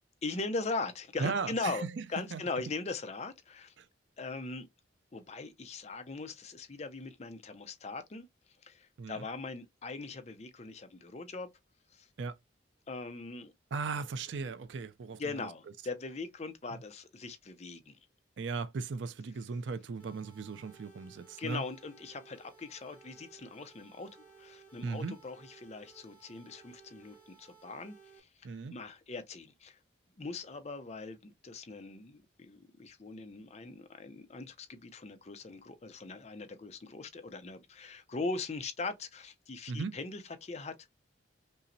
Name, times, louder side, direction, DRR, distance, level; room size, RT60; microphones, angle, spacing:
voice 1, 0.2-1.8 2.1-3.7 4.2-4.7 5.1-8.3 8.6-11.5 11.9-12.1 12.9-13.5 15.2-18.0 21.4-24.1 24.4-29.8 30.2-40.7, left 3 dB, 35° left, 0.5 m, -40 dB
voice 2, 1.2-1.9 2.2-2.4 3.8-3.9 9.0-9.2 12.2-12.4 13.7-15.2 18.4-21.6 24.8-25.1 28.4-28.8 39.7-40.0, right 4 dB, 65° right, 0.4 m, -37 dB
sound 1, 20.0-28.2, right 5 dB, 10° left, 0.9 m, -58 dB
5.4 x 2.1 x 2.6 m
head